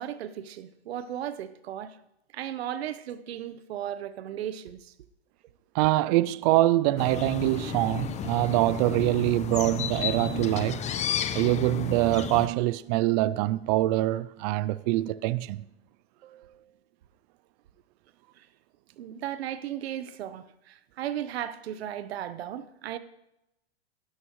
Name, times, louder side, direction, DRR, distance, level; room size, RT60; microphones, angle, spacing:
voice 1, 0.0-1.9 2.3-4.9 16.2-16.6 19.0-23.0, right 11 dB, 75° right, 1.0 m, -36 dB
voice 2, 5.7-10.8 11.3-15.6, right 17 dB, 40° right, 0.4 m, -24 dB
sound 1, 7.0-12.5, left 8 dB, 20° left, 0.9 m, -32 dB
23.0 x 12.5 x 3.1 m
hypercardioid pair, 125°, 32 cm